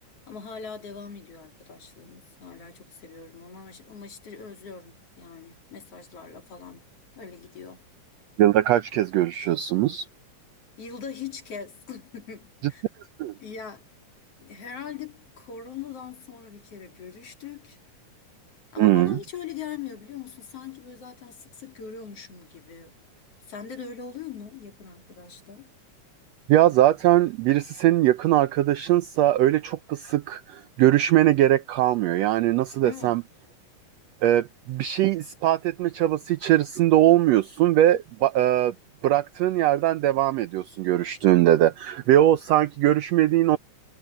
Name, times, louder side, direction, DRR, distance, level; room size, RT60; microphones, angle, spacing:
voice 1, 0.3-6.9 7.2-7.9 10.8-12.8 13.4-13.9 14.4-17.8 18.7-23.0 23.5-25.7 32.8-33.3, left 7 dB, 50° left, 3.5 m, -41 dB
voice 2, 8.4-10.1 13.2-13.3 18.8-19.2 26.5-33.2 34.2-38.7 39.0-43.6, right 13 dB, 80° right, 1.5 m, -21 dB
omnidirectional pair, 3.7 m